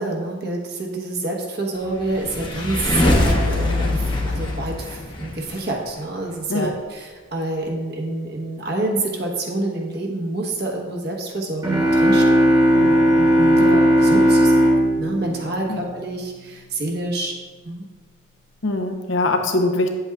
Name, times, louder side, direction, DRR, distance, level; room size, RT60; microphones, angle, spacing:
voice 1, 0.0-13.7 14.0-14.7 15.0-17.3 17.6-17.9, right 2 dB, 50° right, -1 dB, 1.1 m, -27 dB
sound 1, 2.0-5.6, left 1 dB, 25° left, 0.8 m, -22 dB
sound 2, 11.6-16.3, equal, 20° right, 1.0 m, -17 dB
voice 2, 13.6-13.9 15.7-15.8 18.6-19.9, left 2 dB, 70° left, 4 dB, 0.8 m, -23 dB
8.8 x 7.8 x 2.3 m, 1.4 s
head